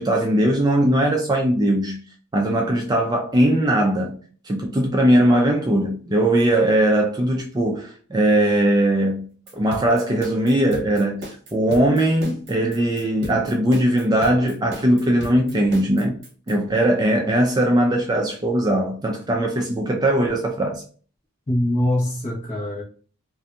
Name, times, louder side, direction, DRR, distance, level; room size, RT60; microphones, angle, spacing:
voice 1, 0.0-2.0 2.3-4.2 4.4-9.3 9.5-11.2 11.5-16.2 16.5-20.8, right 1 dB, 20° right, 0.3 m, -20 dB
sound 1, 9.5-16.5, right 1 dB, 55° right, 0.9 m, -37 dB
voice 2, 21.5-22.8, left 1 dB, 35° left, 1.0 m, -23 dB
2.6 x 2.5 x 2.2 m
head